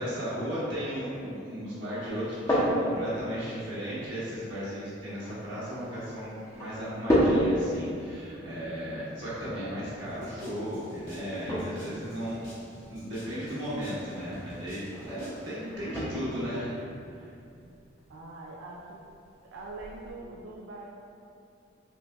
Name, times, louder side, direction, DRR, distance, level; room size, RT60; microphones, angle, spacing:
voice 1, 0.0-12.4 12.9-16.8 17.1-17.3 18.1-18.2, equal, 75° right, -10 dB, 1.1 m, -35 dB
sound 1, 2.0-20.1, equal, 15° left, 0.4 m, -34 dB
voice 2, 8.4-8.9 18.1-19.0 19.5-20.8, right 2 dB, 90° right, -4 dB, 0.3 m, -43 dB
sound 2, 10.0-15.5, equal, 80° left, 1.4 m, -50 dB
4.0 x 2.1 x 2.2 m, 2.5 s
head